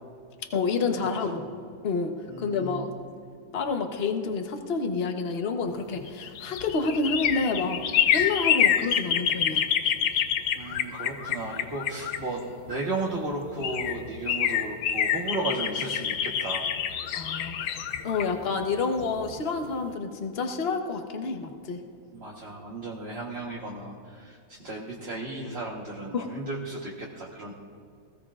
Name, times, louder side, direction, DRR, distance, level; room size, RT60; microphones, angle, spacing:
voice 1, 0.5-1.5 1.8-2.9 3.5-7.8 8.1-9.6 17.1-21.8 26.1-26.3, left 4 dB, 40° left, 4 dB, 0.9 m, -29 dB
voice 2, 2.3-2.9 10.6-16.7 22.1-27.5, right 2 dB, 35° right, -3 dB, 1.2 m, -34 dB
sound 1, 5.9-12.8 13.3-13.4 13.6-19.4 19.7-19.8, left 9 dB, 65° left, 1.1 m, -27 dB
20.5 x 16.0 x 2.4 m, 2.3 s
omnidirectional pair, 2.1 m